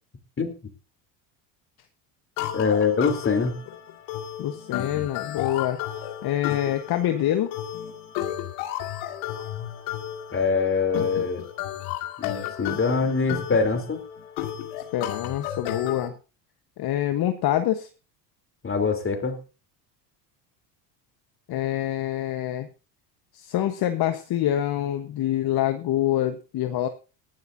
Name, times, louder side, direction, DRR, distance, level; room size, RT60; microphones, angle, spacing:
sound 1, 2.4-16.1, left 12 dB, 75° left, 2.3 m, -33 dB
voice 1, 2.5-3.6 10.3-11.4 12.2-14.0 18.6-19.4, left 5 dB, 25° left, 7 dB, 3.4 m, -24 dB
voice 2, 4.4-5.8 6.2-7.5 14.9-16.1 16.8-17.9 21.5-22.7 23.3-26.9, left 12 dB, 50° left, 8 dB, 1.2 m, -26 dB
19.0 x 12.0 x 2.7 m, 0.32 s
supercardioid pair, 90°, 49 cm